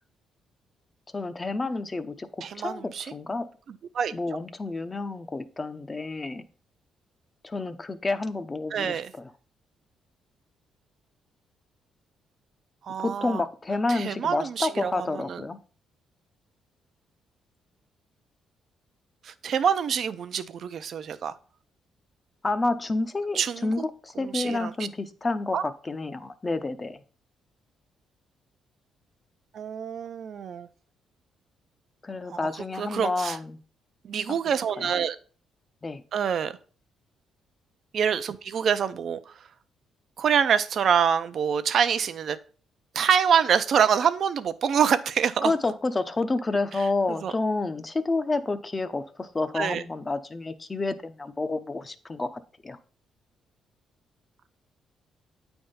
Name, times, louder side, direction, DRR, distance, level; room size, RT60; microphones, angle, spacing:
voice 1, 1.1-2.3 2.5-3.5 4.1-6.4 7.4-9.3 13.0-15.6 22.4-27.0 32.0-33.6 34.8-34.9 35.8-36.0 45.4-52.8, left 3 dB, 25° left, 11 dB, 0.7 m, -29 dB
voice 2, 2.4-3.1 3.9-4.1 8.7-9.1 12.8-13.4 13.9-15.4 19.2-21.4 23.3-23.7 24.2-24.7 25.5-25.6 29.5-30.7 32.3-32.4 32.8-33.4 34.0-35.2 36.1-36.5 37.9-39.3 40.2-42.4 42.9-45.5 47.1-47.3 49.5-49.8, right 7 dB, 60° right, 12 dB, 0.5 m, -26 dB
8.6 x 3.5 x 5.5 m, 0.41 s
cardioid pair, 90°, 0 cm